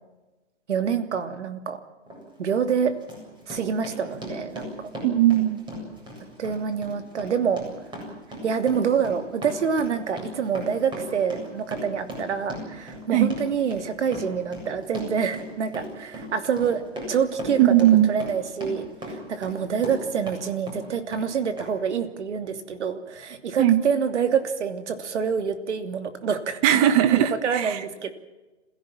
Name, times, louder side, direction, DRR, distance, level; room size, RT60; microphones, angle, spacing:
voice 1, 0.7-1.8 2.4-2.9 3.5-4.9 6.4-7.6 8.4-16.8 17.1-17.7 18.1-26.6 27.1-28.1, right 6 dB, 70° right, 8 dB, 3.0 m, -26 dB
Run, 2.1-2.2 2.7-20.4 20.7-21.3 21.6-21.7, equal, 10° right, 7.9 m, -37 dB
voice 2, 5.0-5.6 13.1-13.3 17.6-18.1 23.6-23.8 26.6-27.8, right 12 dB, 30° right, 12 dB, 1.5 m, -18 dB
27.0 x 16.5 x 7.4 m, 1.1 s
hypercardioid pair, 145°, 36 cm